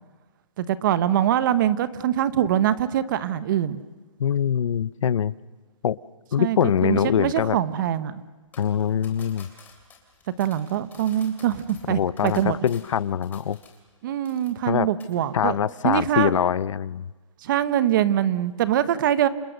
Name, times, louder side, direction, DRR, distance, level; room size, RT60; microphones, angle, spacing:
voice 1, 0.6-3.8 6.4-8.2 10.4-12.6 14.0-15.6 15.8-16.4 17.4-19.3, right 11 dB, 40° right, 14 dB, 1.2 m, -23 dB
voice 2, 4.2-5.3 5.8-6.0 6.3-7.6 8.6-9.5 11.9-13.6 14.7-14.9 15.3-17.1, left 9 dB, 65° left, 19 dB, 0.7 m, -23 dB
sound 1, 8.5-14.0 14.3-14.7 15.0-15.2, left 5 dB, 10° left, 3.2 m, -52 dB
29.0 x 27.5 x 6.6 m, 1.3 s
hypercardioid pair, 160°, 17 cm